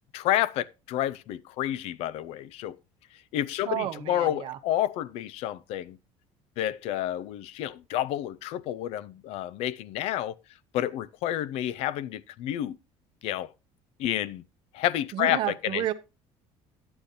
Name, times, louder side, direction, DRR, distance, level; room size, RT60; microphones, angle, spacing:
voice 1, 0.1-2.8 3.3-6.0 6.6-10.3 10.7-12.8 13.2-13.5 14.0-14.4 14.7-15.8, left 12 dB, 55° left, 0.5 m, -29 dB
voice 2, 3.7-4.6 15.1-15.9, right 14 dB, 45° right, 0.7 m, -31 dB
11.5 x 8.8 x 2.6 m
cardioid pair, 175°, 12 cm